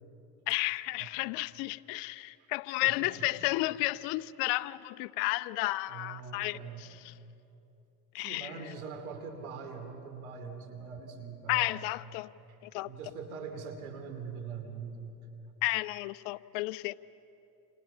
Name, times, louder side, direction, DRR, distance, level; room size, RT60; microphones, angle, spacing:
voice 1, 0.5-7.1 8.1-8.5 11.5-12.3 12.7-12.9 15.6-17.0, left 20 dB, 75° left, 0.8 m, -32 dB
voice 2, 2.2-2.5 2.8-3.3 5.9-6.9 8.2-11.8 12.5-12.6 12.8-15.1, right 5 dB, 90° right, 3.0 m, -43 dB
29.5 x 28.0 x 5.6 m
hypercardioid pair, 70°, 42 cm